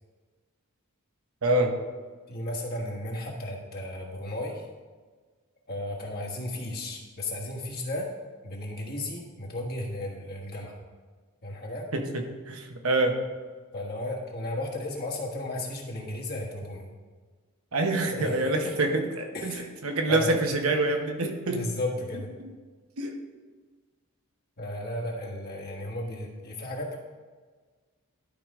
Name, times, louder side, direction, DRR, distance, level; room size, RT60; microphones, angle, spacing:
voice 1, 1.4-1.8 11.9-13.2 17.7-21.7 22.4-22.5 23.0-23.2, right 2 dB, 70° right, 4 dB, 1.0 m, -26 dB
voice 2, 2.3-4.6 5.7-8.1 8.4-10.8 11.4-11.9 13.7-16.9 18.2-18.3 19.3-19.7 20.1-20.3 21.5-22.3 24.6-27.0, left 1 dB, 45° left, -2 dB, 1.5 m, -34 dB
12.0 x 4.9 x 3.7 m, 1.4 s
head